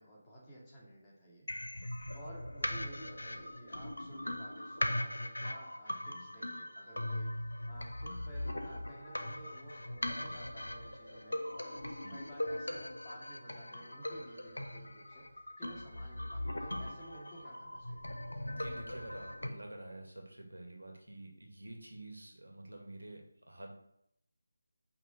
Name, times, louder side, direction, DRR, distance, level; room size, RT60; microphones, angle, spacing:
voice 1, 0.0-1.5 2.1-7.3 7.7-15.3 15.6-18.1, right 1 dB, 15° left, -5 dB, 2.3 m, -53 dB
sound 1, 1.5-19.5, left 1 dB, 75° left, 1.1 m, -40 dB
voice 2, 18.4-23.7, right 1 dB, 80° right, 1 dB, 2.2 m, -49 dB
5.6 x 5.6 x 6.7 m, 0.74 s
figure-of-eight pair, 160°, 0 cm